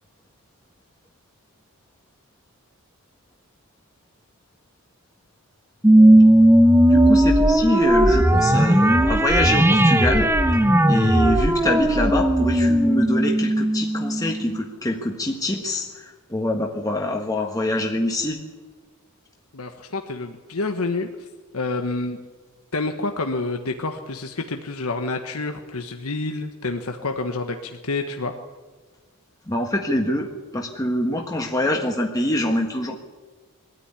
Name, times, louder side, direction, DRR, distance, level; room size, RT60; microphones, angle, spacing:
sound 1, 5.8-14.6, right 1 dB, 10° right, 1.1 m, -16 dB
voice 1, 6.9-10.3 10.9-18.4 29.5-32.9, left 1 dB, 15° left, 1 dB, 1.5 m, -24 dB
voice 2, 19.5-21.3 21.5-22.2 22.7-28.3, left 3 dB, 80° left, 5 dB, 1.3 m, -28 dB
23.0 x 14.0 x 9.8 m, 1.3 s
head